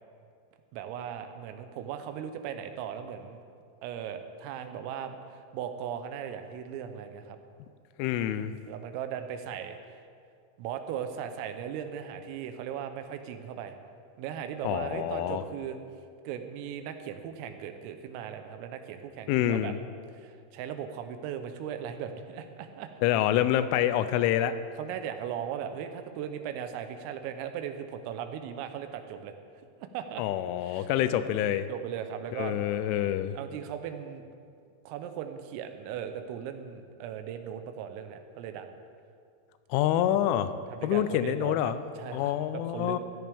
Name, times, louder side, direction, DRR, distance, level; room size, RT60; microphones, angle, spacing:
voice 1, 0.7-3.4 3.8-7.4 8.7-10.0 10.6-13.8 14.2-15.8 16.3-19.7 20.1-22.9 24.8-29.3 29.8-30.2 30.6-30.9 31.7-32.6 33.3-34.3 34.9-38.8 40.7-43.0, right 9 dB, 85° right, 7 dB, 3.5 m, -38 dB
voice 2, 8.0-8.5 14.6-15.4 19.3-19.8 23.0-24.5 30.2-31.7 32.4-33.4 39.7-40.5 40.8-41.8 42.1-43.0, left 11 dB, 85° left, 12 dB, 2.9 m, -27 dB
16.0 x 14.0 x 3.5 m, 2.3 s
omnidirectional pair, 5.8 m